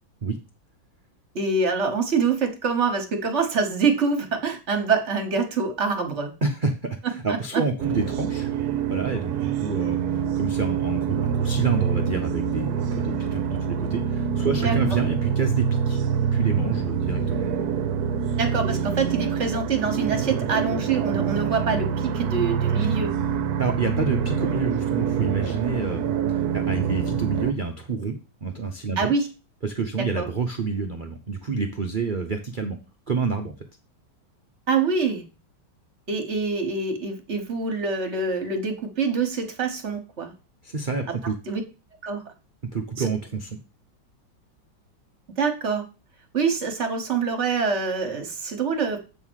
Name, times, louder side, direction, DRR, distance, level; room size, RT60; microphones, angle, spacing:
voice 1, 1.3-6.3 14.6-14.7 18.4-23.2 29.0-29.3 30.2-30.3 34.7-35.2 36.1-40.3 41.5-41.6 42.0-42.2 43.0-43.1 45.4-45.8 46.3-49.0, right 5 dB, 40° right, 6 dB, 1.5 m, -25 dB
voice 2, 6.4-8.5 8.9-16.0 16.3-17.4 23.6-29.1 29.6-32.8 33.1-33.5 40.6-41.4 42.7-43.6, right 4 dB, 80° right, 4 dB, 0.4 m, -28 dB
sound 1, 7.8-27.5, right 7 dB, 60° right, 1.1 m, -25 dB
8.2 x 3.7 x 6.3 m, 0.31 s
omnidirectional pair, 2.2 m